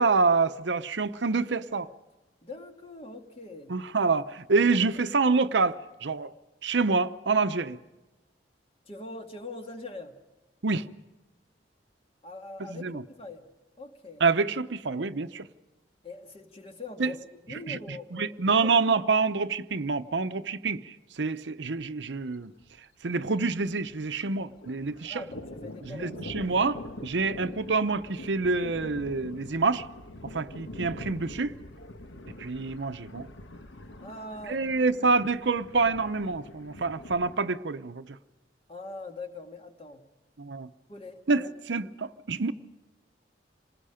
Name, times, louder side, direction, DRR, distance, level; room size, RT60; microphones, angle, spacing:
voice 1, 0.0-1.9 3.7-6.3 6.6-7.8 10.6-10.8 12.7-13.0 14.2-15.5 17.0-17.1 17.7-22.5 23.0-25.2 25.8-29.9 30.2-31.6 32.4-33.3 34.4-38.2 40.4-40.7 41.3-42.5, right 4 dB, 75° right, 0.8 m, -27 dB
voice 2, 2.4-3.7 4.5-4.7 8.9-10.2 12.2-13.5 13.8-14.3 16.0-18.7 25.1-26.2 34.0-34.8 38.7-40.1 40.9-41.5, left 2 dB, 30° left, 2.0 m, -42 dB
Thunder, 21.8-21.9 22.2-22.3 22.6-24.1 24.4-37.4, left 1 dB, 80° left, 1.5 m, -44 dB
27.5 x 20.0 x 5.1 m
head